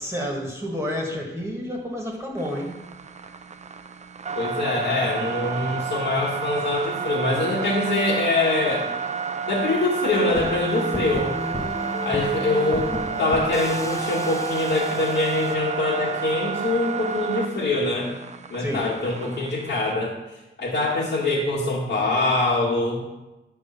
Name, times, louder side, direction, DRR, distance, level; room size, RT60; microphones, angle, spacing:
voice 1, 0.0-2.8 18.6-18.9, equal, 15° right, -1 dB, 1.6 m, -30 dB
sound 1, 2.4-19.9, right 6 dB, 35° right, 0.5 m, -31 dB
voice 2, 4.4-8.9 9.5-11.4 12.0-12.9 13.2-18.1 18.5-23.0, left 2 dB, 65° left, -7 dB, 2.0 m, -24 dB
sound 2, 10.3-15.6, left 1 dB, 15° left, 0.7 m, -33 dB
10.0 x 4.7 x 7.0 m, 1.0 s
wide cardioid pair, 150°, 20 cm